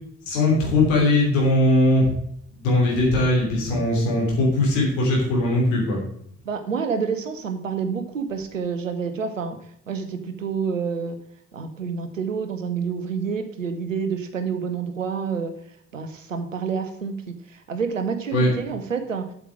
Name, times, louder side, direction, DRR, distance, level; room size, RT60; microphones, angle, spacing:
voice 1, 0.3-2.1 2.5-6.0 18.3-18.5, left 1 dB, 75° left, -2 dB, 3.2 m, -20 dB
voice 2, 6.4-9.6 9.9-11.2 11.5-15.5 15.9-19.3, right 6 dB, 85° right, 8 dB, 0.8 m, -28 dB
8.1 x 7.4 x 4.8 m, 0.67 s
figure-of-eight pair, 40°, 38 cm